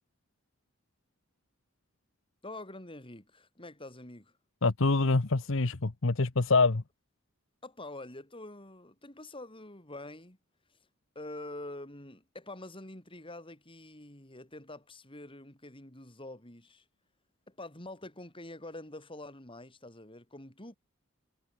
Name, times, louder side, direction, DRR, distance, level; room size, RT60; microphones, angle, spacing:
voice 1, 2.4-4.4 7.6-10.4 10.7-10.8 11.1-16.8 17.5-20.8, left 2 dB, 25° left, 6.8 m, -46 dB
voice 2, 4.6-6.8, left 3 dB, 65° left, 1.1 m, -25 dB
head